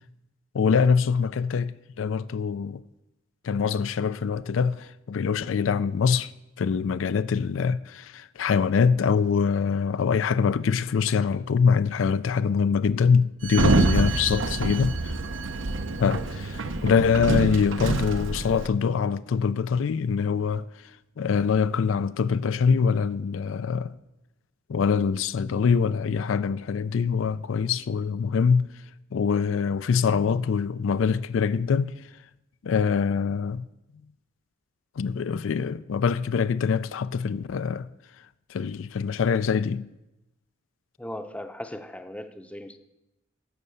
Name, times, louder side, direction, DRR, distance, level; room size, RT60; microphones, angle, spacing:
voice 1, 0.5-2.8 3.4-6.3 6.6-15.1 16.0-20.7 21.2-23.9 24.7-28.7 29.1-31.9 32.6-33.6 35.0-37.9 38.5-39.9, left 6 dB, 80° left, 0.4 m, -24 dB
Sliding door, 13.4-18.7, right 2 dB, 80° right, 0.8 m, -26 dB
voice 2, 41.0-42.8, left 1 dB, 5° left, 0.6 m, -38 dB
13.5 x 5.5 x 6.8 m
head